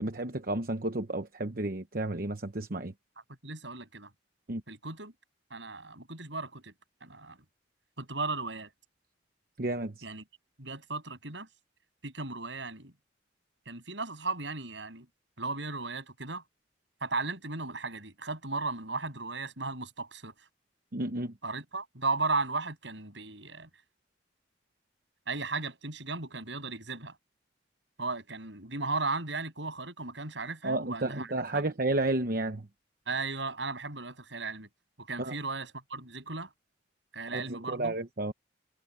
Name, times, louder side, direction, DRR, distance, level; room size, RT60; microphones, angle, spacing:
voice 1, 0.0-2.9 4.5-4.6 9.6-10.0 20.9-21.3 30.6-32.7 35.2-35.4 37.3-38.3, right 2 dB, 50° right, 1.0 m, -32 dB
voice 2, 3.4-4.1 4.7-5.1 5.5-6.7 7.0-7.4 8.0-8.7 10.0-10.2 10.6-11.5 12.0-12.9 13.7-15.1 15.4-16.4 17.0-20.3 21.4-23.7 25.3-27.2 28.0-31.6 33.1-34.7 35.0-36.5 37.1-37.9, right 3 dB, 70° right, 7.8 m, -36 dB
head